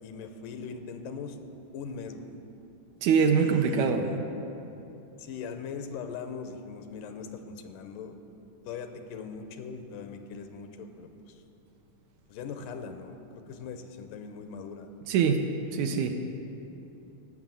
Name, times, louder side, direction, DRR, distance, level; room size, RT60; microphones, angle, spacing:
voice 1, 0.0-1.4 1.7-2.4 3.4-4.2 5.2-8.2 8.7-11.4 12.3-14.9, left 5 dB, 90° left, 7 dB, 2.4 m, -40 dB
voice 2, 3.0-4.1 15.1-15.4 15.7-16.2, right 6 dB, 80° right, 5 dB, 2.0 m, -24 dB
16.5 x 6.1 x 7.5 m, 3.0 s
omnidirectional pair, 3.7 m